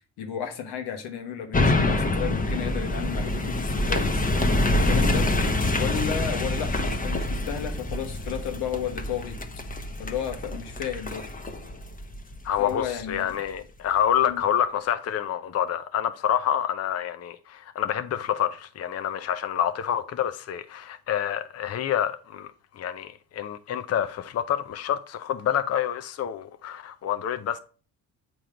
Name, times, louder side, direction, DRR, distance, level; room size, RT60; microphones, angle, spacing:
voice 1, 0.2-4.2 4.7-5.3 5.7-9.4 10.0-11.2 12.6-13.4 14.3-14.4, left 8 dB, 80° left, 1.3 m, -33 dB
sound 1, 1.5-13.0 13.4-13.5, left 2 dB, 20° left, 1.0 m, -26 dB
voice 2, 12.4-27.6, left 10 dB, 40° left, 0.6 m, -27 dB
7.7 x 3.1 x 5.0 m
supercardioid pair, 60°, 40 cm